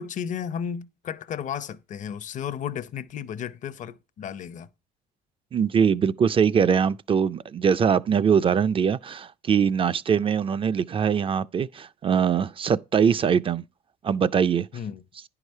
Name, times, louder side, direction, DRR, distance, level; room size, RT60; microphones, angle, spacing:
voice 1, 0.0-4.7 14.7-15.0, left 8 dB, 50° left, 0.6 m, -33 dB
voice 2, 5.5-13.6 14.0-14.7, right 7 dB, 30° right, 0.4 m, -22 dB
10.5 x 4.9 x 5.4 m
cardioid pair, 110°, 17 cm